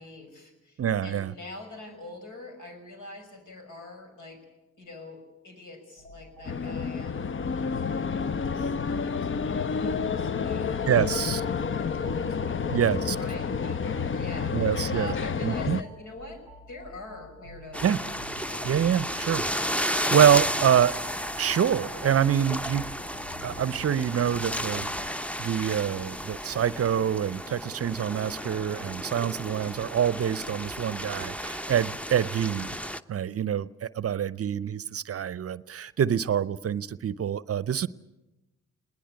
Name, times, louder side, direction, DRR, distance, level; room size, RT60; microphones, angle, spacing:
voice 1, 0.0-4.4 4.8-7.3 8.1-18.8, left 2 dB, 70° left, 4 dB, 5.9 m, -45 dB
voice 2, 0.8-1.3 10.9-11.4 12.7-13.2 14.5-15.1 15.4-15.8 17.8-18.0 18.6-21.0 21.4-22.9 23.4-32.8 33.1-37.9, right 9 dB, 45° right, 20 dB, 0.7 m, -26 dB
sound 1, 6.0-25.1, left 1 dB, 85° left, 3.5 m, -48 dB
sound 2, 6.5-15.8, left 6 dB, 40° left, 0.8 m, -29 dB
sound 3, 17.7-33.0, equal, 5° left, 0.8 m, -33 dB
20.5 x 19.0 x 9.7 m, 1.0 s
hypercardioid pair, 40°, 32 cm